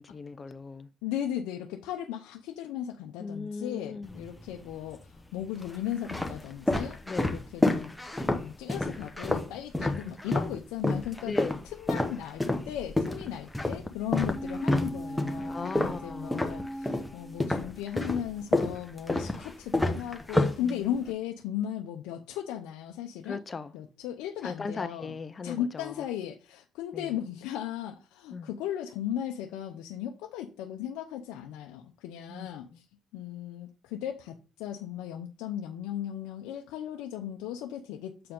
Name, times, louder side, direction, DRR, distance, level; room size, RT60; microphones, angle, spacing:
voice 1, 0.0-0.9 3.2-4.2 7.1-7.3 9.8-10.1 11.2-11.6 15.4-16.5 20.6-20.9 23.2-23.7 24.4-26.0 26.9-27.1 28.3-28.5 32.3-32.5, left 4 dB, 35° left, 0.6 m, -38 dB
voice 2, 1.0-5.0 5.3-11.4 11.6-23.4 23.7-25.2 25.4-32.9 33.1-38.3, left 10 dB, 90° left, 0.7 m, -36 dB
sound 1, 4.0-4.8 5.4-10.6 10.8-17.1 17.4-21.1, left 1 dB, 5° left, 1.1 m, -29 dB
sound 2, 14.2-18.0 18.3-18.4, equal, 15° right, 0.6 m, -39 dB
7.5 x 4.6 x 3.7 m
supercardioid pair, 75°, 0 cm